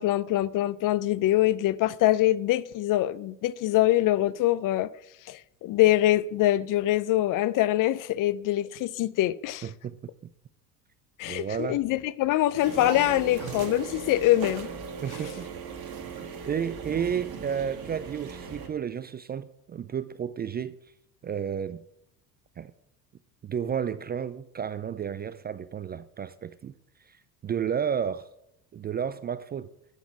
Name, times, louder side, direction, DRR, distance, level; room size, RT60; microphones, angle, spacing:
voice 1, 0.0-4.9 5.3-9.7 11.2-14.7, left 14 dB, 45° left, 0.6 m, -24 dB
voice 2, 9.6-10.0 11.3-11.8 15.0-15.4 16.2-20.8 21.2-21.8 22.6-22.7 23.4-26.7 27.1-27.2 27.4-28.3 28.7-29.7, right 8 dB, 20° right, 0.4 m, -32 dB
sound 1, 12.6-18.7, right 6 dB, 50° right, 2.4 m, -38 dB
9.2 x 7.1 x 7.5 m
hypercardioid pair, 75°, 47 cm